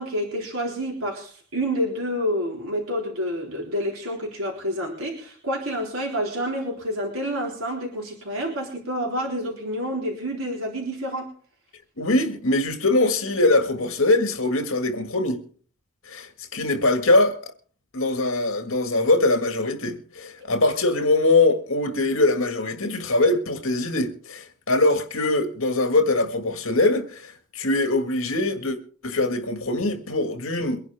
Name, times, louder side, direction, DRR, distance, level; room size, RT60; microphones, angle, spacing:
voice 1, 0.0-11.3, equal, 90° right, 3.8 m, -28 dB
voice 2, 12.0-15.4 16.1-17.4 17.9-28.8 29.0-30.8, left 2 dB, 75° left, 1.9 m, -22 dB
23.5 x 11.0 x 3.5 m
head